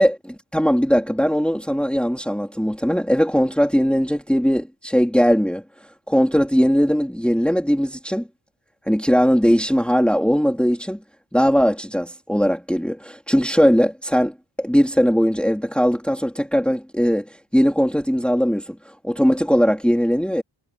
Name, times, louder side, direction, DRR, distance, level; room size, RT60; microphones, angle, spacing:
voice 1, 0.0-5.6 6.1-8.3 8.9-11.0 11.3-18.8 19.0-20.4, equal, ahead, 3.8 m, -19 dB
wide cardioid pair, 60°, 47 cm